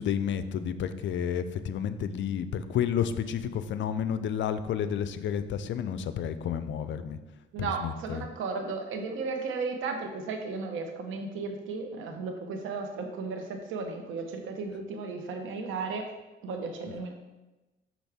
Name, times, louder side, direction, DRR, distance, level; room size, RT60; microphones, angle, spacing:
voice 1, 0.0-7.2 7.6-8.2, left 8 dB, 70° left, 12 dB, 0.5 m, -31 dB
voice 2, 7.5-16.1 16.4-17.1, right 4 dB, 80° right, 4 dB, 1.1 m, -35 dB
6.2 x 6.0 x 3.5 m, 1.1 s
cardioid pair, 90°, 20 cm